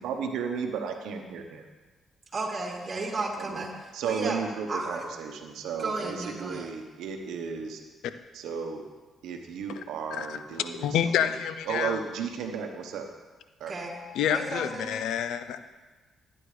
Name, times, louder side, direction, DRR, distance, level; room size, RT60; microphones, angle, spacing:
voice 1, 0.0-1.7 3.4-3.7 3.9-7.8 8.3-8.8 9.2-11.4 11.6-13.1 13.6-13.7, right 6 dB, 85° right, 4 dB, 1.0 m, -34 dB
voice 2, 2.3-3.7 4.0-4.4 4.7-5.0 5.8-6.7 13.7-13.9 14.3-14.9, right 2 dB, 35° right, 0 dB, 2.2 m, -33 dB
voice 3, 10.8-12.0 14.1-15.6, left 9 dB, 85° left, 11 dB, 0.5 m, -28 dB
13.0 x 9.7 x 3.3 m, 1.3 s
cardioid pair, 80°, 0 cm